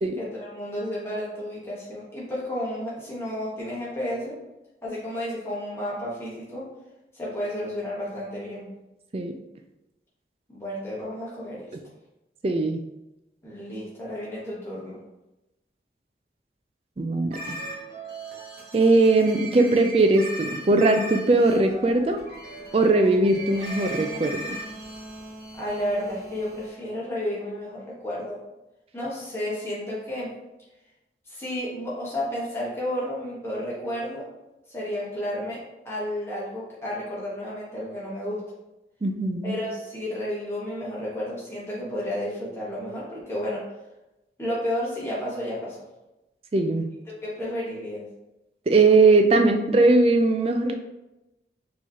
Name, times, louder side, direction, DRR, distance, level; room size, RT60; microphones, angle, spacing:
voice 1, 0.2-4.4 4.8-6.7 7.1-8.7 10.5-11.6 13.4-15.0 25.6-28.4 28.9-30.3 31.3-34.2 34.7-35.6 35.8-38.4 39.4-43.6 44.4-45.8 47.1-48.0, left 1 dB, 15° left, -7 dB, 1.2 m, -32 dB
voice 2, 12.4-12.8 17.0-17.6 18.7-22.2 22.7-24.6 39.0-39.6 46.5-46.9 48.7-50.7, right 2 dB, 35° right, 6 dB, 0.3 m, -20 dB
sound 1, 17.3-26.7, right 2 dB, 55° right, 1.4 m, -38 dB
4.6 x 3.0 x 2.8 m, 0.97 s
head